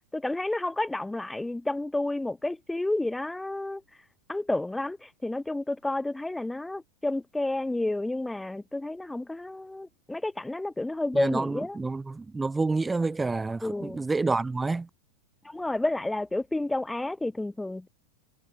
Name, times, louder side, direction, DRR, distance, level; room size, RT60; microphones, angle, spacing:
voice 1, 0.1-3.8 4.3-11.8 13.6-14.0 15.4-17.9, left 2 dB, 5° left, 6.5 m, -30 dB
voice 2, 11.1-14.9, right 3 dB, 10° right, 1.6 m, -28 dB
figure-of-eight pair, 90°, 0 cm